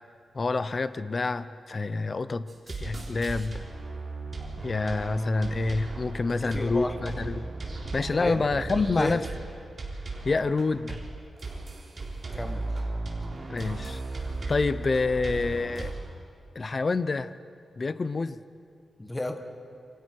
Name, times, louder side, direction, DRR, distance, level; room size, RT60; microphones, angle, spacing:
voice 1, 0.3-2.5 2.8-3.6 4.6-7.5 7.9-9.2 10.2-11.0 13.5-14.0 14.5-15.9 16.6-17.3 17.8-18.4, left 3 dB, 35° left, 13 dB, 0.7 m, -27 dB
sound 1, 2.5-15.9, right 3 dB, 35° right, 3.6 m, -36 dB
voice 2, 6.3-7.0 8.1-8.4 8.7-9.2 12.3-12.6 19.0-19.4, left 1 dB, 15° left, 5 dB, 1.6 m, -32 dB
28.0 x 25.0 x 4.6 m, 2.4 s
wide cardioid pair, 150°, 0 cm